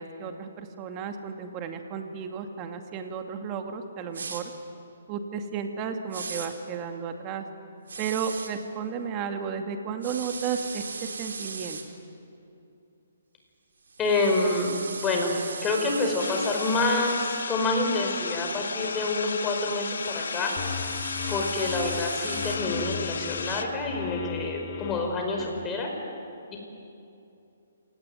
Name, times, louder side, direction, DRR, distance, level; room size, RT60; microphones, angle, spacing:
voice 1, 0.0-4.4 5.1-7.5 8.0-12.0, right 6 dB, 25° right, 5 dB, 2.3 m, -33 dB
sound 1, 4.1-4.4 6.1-6.5 7.9-8.5 10.0-11.8 13.9-17.4 19.6-22.6, right 4 dB, 80° right, 3.6 m, -38 dB
voice 2, 14.0-20.6 21.3-25.9 26.5-26.6, left 2 dB, 15° left, 1 dB, 5.1 m, -27 dB
sound 2, 16.2-23.6, left 5 dB, 75° left, 1.8 m, -34 dB
sound 3, 20.6-25.7, left 10 dB, 40° left, 1.4 m, -37 dB
27.0 x 18.5 x 9.2 m, 2.7 s
hypercardioid pair, 145°, 0 cm